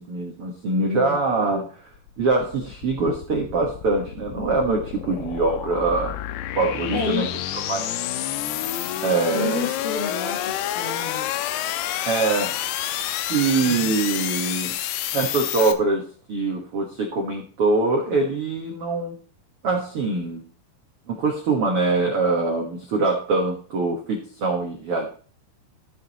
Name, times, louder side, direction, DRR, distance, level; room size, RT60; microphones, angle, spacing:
voice 1, 0.0-1.7 2.2-6.2 6.6-7.3 7.7-7.9 9.0-9.7 12.1-12.5 13.3-14.7 15.1-19.1 19.6-20.4 21.1-25.1, right 3 dB, 80° right, 0 dB, 1.2 m, -23 dB
voice 2, 0.9-1.4 5.1-5.3 6.9-7.3 9.3-11.3 13.6-13.9, left 4 dB, 60° left, -1 dB, 1.5 m, -30 dB
sound 1, 1.9-15.7, left 12 dB, 80° left, 2.6 m, -29 dB
13.5 x 6.9 x 3.0 m, 0.41 s
omnidirectional pair, 4.9 m